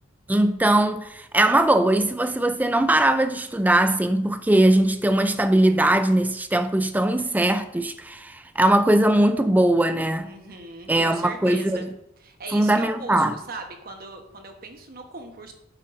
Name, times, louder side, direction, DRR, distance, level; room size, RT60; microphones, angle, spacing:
voice 1, 0.3-10.3 10.9-11.8 12.5-13.3, right 1 dB, 10° right, 0.4 m, -20 dB
voice 2, 10.2-11.9 12.2-15.5, right 3 dB, 50° right, 1.1 m, -39 dB
9.0 x 8.2 x 2.6 m
head